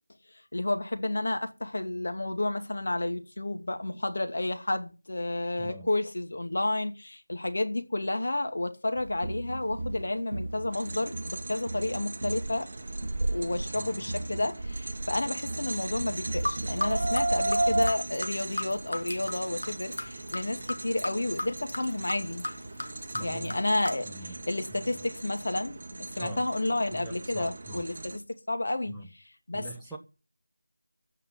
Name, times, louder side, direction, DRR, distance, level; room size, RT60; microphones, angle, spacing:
voice 1, 0.5-12.7 13.0-22.4 23.2-24.1 24.5-28.2 28.5-29.0 29.5-29.7, left 2 dB, 60° left, 2.6 m, -31 dB
voice 2, 5.6-5.9 13.7-14.3 23.1-23.6 24.0-24.4 24.7-24.9 26.2-26.5 26.9-27.9 28.8-29.1 29.5-30.0, right 2 dB, ahead, 1.1 m, -43 dB
sound 1, 8.9-17.9, right 2 dB, 55° right, 1.2 m, -32 dB
sound 2, 10.7-28.2, right 2 dB, 35° right, 1.6 m, -41 dB
sound 3, 16.3-23.9, left 1 dB, 85° left, 3.5 m, -37 dB
15.5 x 5.8 x 9.7 m
figure-of-eight pair, 175°, 0 cm